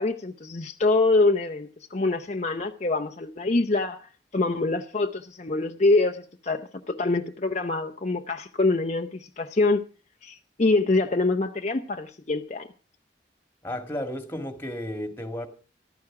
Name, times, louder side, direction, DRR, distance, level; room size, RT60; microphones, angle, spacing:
voice 1, 0.0-9.8 10.2-12.7, left 3 dB, 40° left, 0.7 m, -25 dB
voice 2, 13.6-15.5, left 1 dB, 10° left, 2.0 m, -33 dB
14.5 x 13.0 x 4.8 m
head